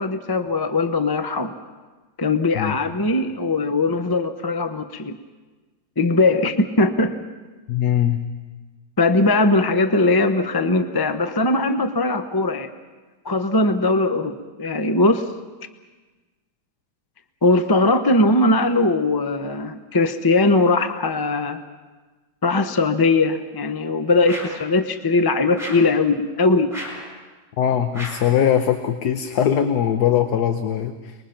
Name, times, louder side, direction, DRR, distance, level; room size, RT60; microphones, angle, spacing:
voice 1, 0.0-1.5 2.2-5.1 6.0-7.2 9.0-12.7 13.2-15.3 17.4-21.6 22.4-26.7, left 2 dB, 20° left, 8 dB, 0.7 m, -20 dB
voice 2, 7.7-8.2 27.6-31.1, left 9 dB, 70° left, 7 dB, 1.5 m, -21 dB
sound 1, 24.2-24.7 25.5-26.0 26.7-27.1 27.9-28.3, equal, ahead, 6.4 m, -34 dB
29.0 x 21.5 x 5.8 m, 1.3 s
omnidirectional pair, 1.8 m